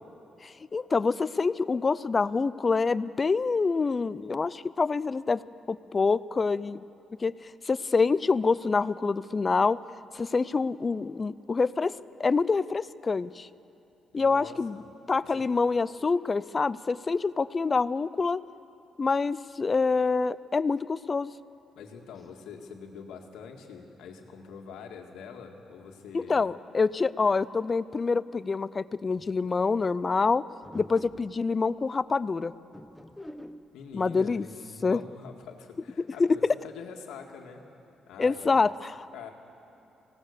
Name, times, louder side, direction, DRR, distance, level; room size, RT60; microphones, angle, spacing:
voice 1, 0.4-6.8 7.2-7.3 7.7-9.8 10.1-11.9 12.2-13.5 14.1-14.8 15.1-18.4 19.0-21.3 26.1-30.4 30.7-32.5 33.9-34.5 34.8-35.0 36.2-36.4 38.2-39.1, left 4 dB, 30° left, 17 dB, 0.5 m, -26 dB
voice 2, 14.1-14.9 15.2-15.4 21.8-26.5 33.7-37.6 38.1-38.7 39.1-39.3, left 6 dB, 85° left, 3 dB, 2.1 m, -44 dB
sound 1, 29.2-29.5 30.6-31.4 32.7-33.7, left 1 dB, 5° left, 1.0 m, -46 dB
25.0 x 17.5 x 6.7 m, 3.0 s
cardioid pair, 90°, 0 cm